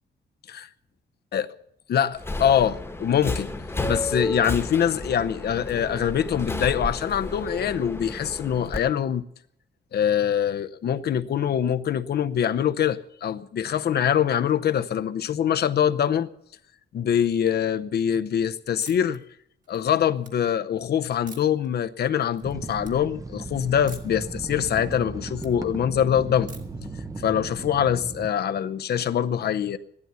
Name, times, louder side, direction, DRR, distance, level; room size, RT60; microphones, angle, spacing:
voice 1, 1.9-3.5 3.9-9.2 9.9-16.3 16.9-19.2 19.7-26.5 27.2-29.8, left 9 dB, 60° left, 0.7 m, -24 dB
Subway metro underground, 2.2-8.8, left 2 dB, 15° left, 1.2 m, -32 dB
sound 1, 18.8-19.2 19.6-20.3 21.3-21.7 22.1-22.5 22.8-22.9 23.9-24.2 24.6-25.5 26.5-26.9, right 4 dB, 50° right, 1.9 m, -46 dB
sound 2, 22.4-28.3, right 3 dB, 20° right, 0.7 m, -36 dB
15.5 x 12.0 x 6.9 m
wide cardioid pair, 170°, 18 cm